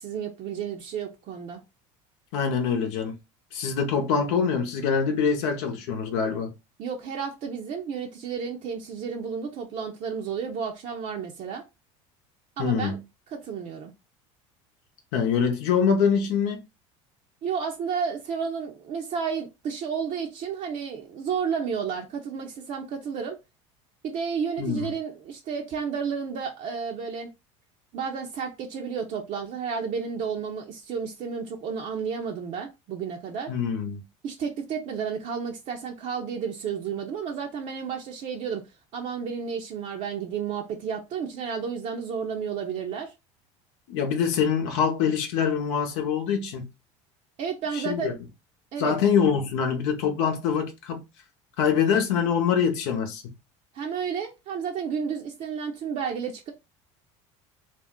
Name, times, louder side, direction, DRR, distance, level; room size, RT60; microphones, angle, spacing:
voice 1, 0.0-1.6 6.8-11.7 12.6-13.0 13.3-13.9 17.4-23.4 24.0-27.3 27.9-33.5 34.2-38.7 38.9-43.1 47.4-48.1 48.7-48.9 53.7-56.5, right 6 dB, 50° right, 0.6 m, -32 dB
voice 2, 2.3-3.2 3.5-6.5 12.6-13.0 15.1-16.6 24.6-24.9 33.5-34.0 43.9-46.7 47.7-48.1 48.8-51.0 51.6-53.3, left 6 dB, 75° left, 0.7 m, -24 dB
2.5 x 2.0 x 3.5 m
supercardioid pair, 90°, 16 cm